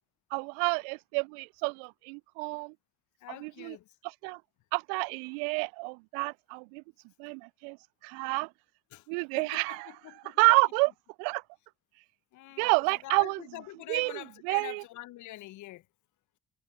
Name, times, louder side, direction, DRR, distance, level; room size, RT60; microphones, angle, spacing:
voice 1, 0.3-2.7 3.3-3.8 4.0-4.4 4.7-6.8 7.2-7.8 8.0-8.5 9.1-9.9 10.2-10.9 11.2-11.4 12.6-13.4 13.9-14.8, right 38 dB, 70° right, 0.5 m, -29 dB
voice 2, 3.2-3.9 8.9-9.1 9.4-10.4 12.3-12.7 13.0-15.8, left 16 dB, 65° left, 1.3 m, -45 dB
figure-of-eight pair, 45°, 32 cm